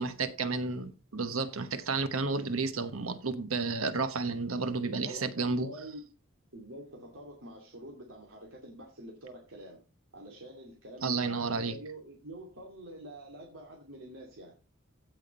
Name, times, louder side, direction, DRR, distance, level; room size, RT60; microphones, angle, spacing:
voice 1, 0.0-5.7 11.0-11.8, right 4 dB, 90° right, 1.2 m, -31 dB
voice 2, 4.9-6.0 6.5-9.8 10.1-14.5, right 1 dB, 70° right, 2.5 m, -46 dB
15.5 x 5.9 x 4.0 m
head